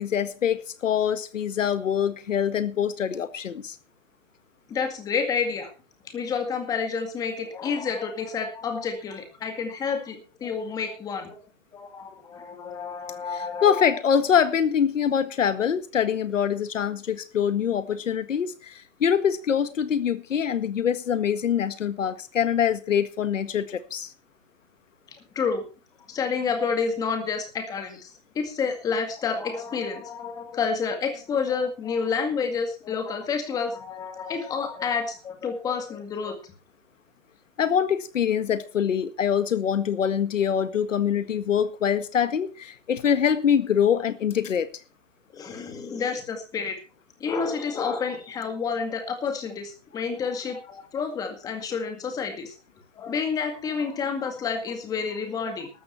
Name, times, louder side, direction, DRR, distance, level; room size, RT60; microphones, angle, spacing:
voice 1, 0.0-3.8 13.6-24.1 37.6-44.7, left 8 dB, 80° left, 1.7 m, -24 dB
voice 2, 4.7-5.7 6.0-11.4 11.7-13.9 25.4-25.7 26.1-28.1 28.3-36.4 45.3-46.8 47.2-52.5 52.9-55.7, left 5 dB, 10° left, 2.0 m, -29 dB
13.0 x 13.0 x 4.5 m
hypercardioid pair, 170°, 38 cm